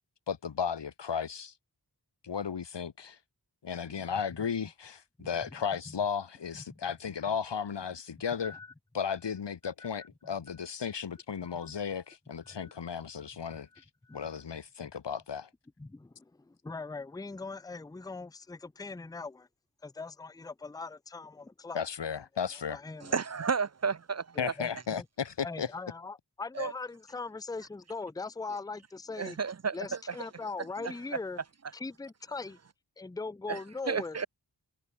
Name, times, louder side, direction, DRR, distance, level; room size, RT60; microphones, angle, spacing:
voice 1, 0.3-1.5 2.2-3.2 3.6-8.6 8.9-13.7 14.1-15.5 21.7-22.8 24.4-25.7, left 7 dB, 80° left, 1.3 m, -35 dB
voice 2, 5.2-5.5 5.9-6.0 6.5-6.8 8.4-8.7 9.8-9.9 10.6-10.7 11.6-11.7 12.4-12.7 13.5-14.5 15.8-19.5 19.8-21.8 22.7-23.2 24.4-25.1 25.4-29.4 29.7-31.4 31.7-32.6 33.0-34.3, left 3 dB, 10° left, 0.5 m, -41 dB
voice 3, 23.0-24.5 26.6-26.7 29.2-29.9 33.5-33.6 33.9-34.3, right 5 dB, 40° right, 0.5 m, -32 dB
wide cardioid pair, 85°, 42 cm